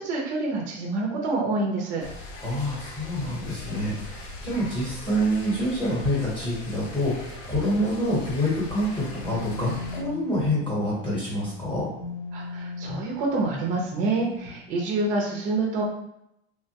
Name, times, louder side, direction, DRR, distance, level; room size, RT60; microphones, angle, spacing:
voice 1, 0.0-2.0 12.3-15.8, right 3 dB, 25° right, -2 dB, 0.5 m, -27 dB
sound 1, 2.0-10.0, left 2 dB, 45° left, 0.5 m, -40 dB
voice 2, 2.4-11.9, equal, 15° left, -8 dB, 0.9 m, -27 dB
sound 2, 9.2-14.7, left 3 dB, 75° left, 0.9 m, -38 dB
3.1 x 2.2 x 2.8 m, 0.80 s
supercardioid pair, 175°, 33 cm